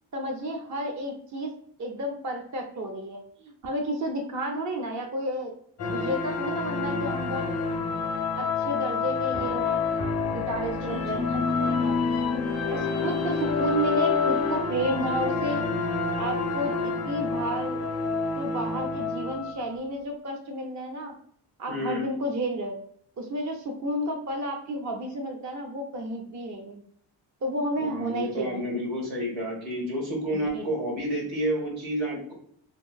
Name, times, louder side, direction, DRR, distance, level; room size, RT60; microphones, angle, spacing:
voice 1, 0.1-1.5 1.8-5.5 5.8-7.5 8.4-12.0 12.7-15.7 16.2-17.8 18.4-21.1 21.6-22.7 23.2-26.8 27.4-28.7 30.5-30.6, right 1 dB, 40° right, 3 dB, 0.5 m, -31 dB
sound 1, 5.8-19.7, left 4 dB, 35° left, 0.4 m, -28 dB
voice 2, 10.8-11.5 12.6-13.1 21.7-22.1 27.8-32.3, equal, 80° right, -2 dB, 1.4 m, -30 dB
2.9 x 2.5 x 2.2 m, 0.63 s
cardioid pair, 90°, 46 cm